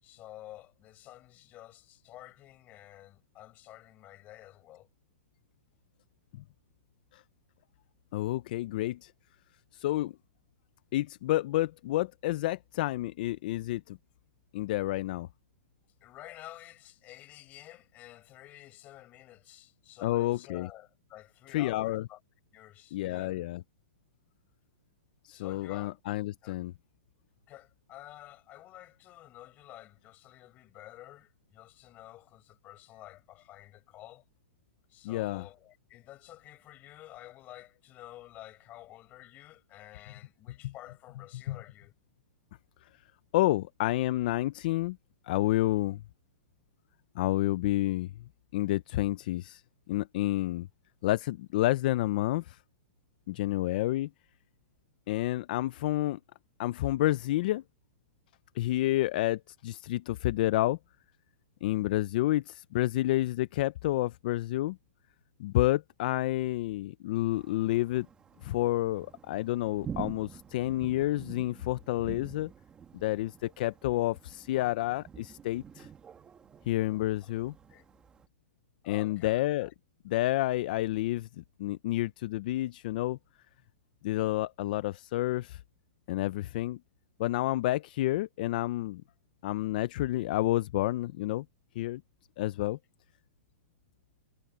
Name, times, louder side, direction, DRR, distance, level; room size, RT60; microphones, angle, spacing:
voice 1, 0.0-4.9 16.0-22.2 22.5-23.4 25.3-26.0 26.4-26.6 27.5-34.2 34.9-41.9 77.7-77.8 78.8-79.7, left 15 dB, 20° left, 4.7 m, -50 dB
voice 2, 8.1-9.1 9.7-10.1 10.9-14.0 14.5-15.3 20.0-20.7 21.5-22.0 22.9-23.6 25.2-26.7 35.0-35.4 40.6-40.7 41.5-41.6 43.3-45.0 45.3-46.0 47.2-48.1 48.5-49.6 49.9-50.7 51.0-52.6 53.3-54.1 55.1-56.2 56.6-57.6 58.6-60.8 61.6-64.8 65.4-68.1 68.4-72.5 72.9-75.9 76.7-77.5 78.9-79.7 80.1-83.2 84.0-85.6 86.1-86.8 87.2-89.0 89.4-91.4 91.8-92.0 92.4-92.8, left 16 dB, 40° left, 0.4 m, -29 dB
Thunder, 67.3-78.3, right 7 dB, 10° right, 1.5 m, -47 dB
hypercardioid pair, 165°, 7 cm